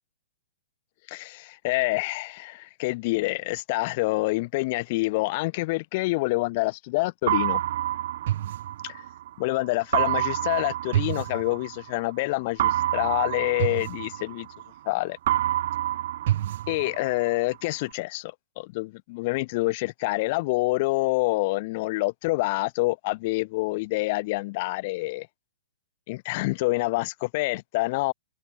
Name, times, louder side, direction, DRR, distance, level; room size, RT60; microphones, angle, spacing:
voice 1, 1.1-7.6 9.4-14.5 14.8-15.2 16.7-25.3 26.1-28.1, left 23 dB, 40° left, 5.0 m, -27 dB
sound 1, 7.3-9.3 9.9-12.0 12.6-14.9 15.3-17.3, right 13 dB, 55° right, 7.3 m, -27 dB
open air
hypercardioid pair, 150°, 0 cm